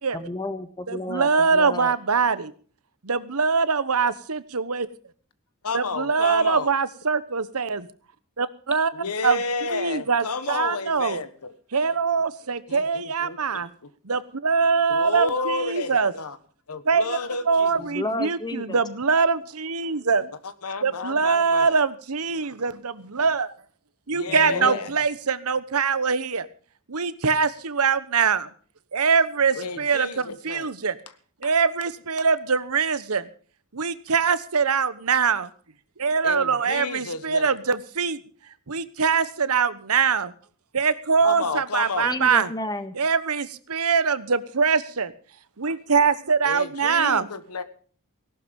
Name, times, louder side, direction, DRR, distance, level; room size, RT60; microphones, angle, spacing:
voice 1, 0.1-1.9 17.7-18.8 24.3-24.8 42.0-42.9, left 1 dB, 20° left, 9 dB, 1.6 m, -32 dB
voice 2, 0.9-2.5 3.0-4.9 5.7-7.9 8.4-8.9 9.2-9.4 9.7-11.2 11.7-13.7 14.0-16.1 16.8-17.2 17.5-20.2 20.8-23.5 24.1-26.5 26.9-28.5 28.9-30.9 31.4-33.3 33.7-35.5 36.0-38.2 38.7-40.3 40.7-42.5 42.9-45.1 45.6-47.3, right 5 dB, 75° right, 14 dB, 1.1 m, -23 dB
voice 3, 5.6-6.7 8.9-11.5 12.7-13.9 14.9-16.4 16.7-17.8 20.2-20.3 20.6-21.8 24.1-24.9 29.6-30.7 31.4-31.5 36.2-37.5 41.2-42.1 46.4-47.6, left 4 dB, 85° left, 12 dB, 1.4 m, -31 dB
18.0 x 12.0 x 5.3 m, 0.43 s
head